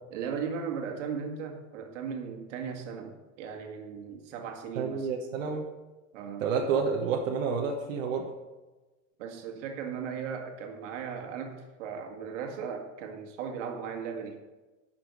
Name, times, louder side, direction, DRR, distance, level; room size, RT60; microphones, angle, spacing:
voice 1, 0.1-5.1 6.1-6.5 9.2-14.4, right 6 dB, 70° right, 3 dB, 2.0 m, -37 dB
voice 2, 4.7-5.6 6.4-8.3, right 5 dB, 90° right, 0 dB, 1.6 m, -29 dB
11.5 x 6.1 x 5.4 m, 1.2 s
supercardioid pair, 155°, 38 cm